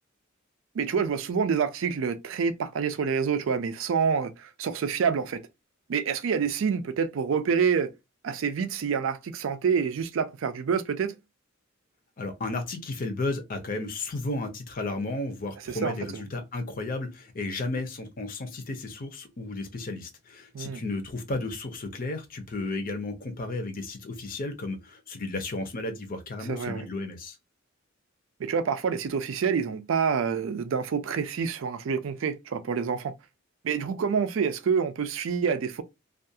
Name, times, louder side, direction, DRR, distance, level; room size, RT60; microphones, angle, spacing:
voice 1, 0.8-5.4 5.9-7.9 8.2-11.2 15.7-16.2 20.5-20.8 26.4-26.8 28.4-33.1 33.6-35.8, right 6 dB, 65° right, 0.4 m, -27 dB
voice 2, 12.2-27.4, left 2 dB, 45° left, 0.6 m, -33 dB
2.4 x 2.3 x 2.6 m
head